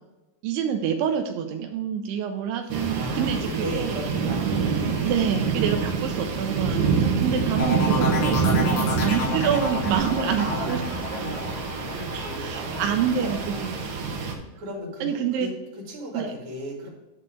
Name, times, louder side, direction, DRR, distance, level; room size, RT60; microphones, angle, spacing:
voice 1, 0.4-4.0 5.1-10.8 12.4-13.7 15.0-15.5 16.1-16.3, right 8 dB, 85° right, 5 dB, 2.7 m, -27 dB
voice 2, 2.6-5.3 8.5-9.1 10.4-10.8 11.1-13.7 14.6-15.5 15.9-16.9, right 1 dB, 40° right, -3 dB, 2.6 m, -36 dB
sound 1, 2.7-14.3, right 5 dB, 70° right, 2.5 m, -26 dB
sound 2, 7.6-13.2 13.6-14.1, left 4 dB, 80° left, 4.7 m, -31 dB
10.0 x 4.3 x 5.0 m, 1.1 s
omnidirectional pair, 4.7 m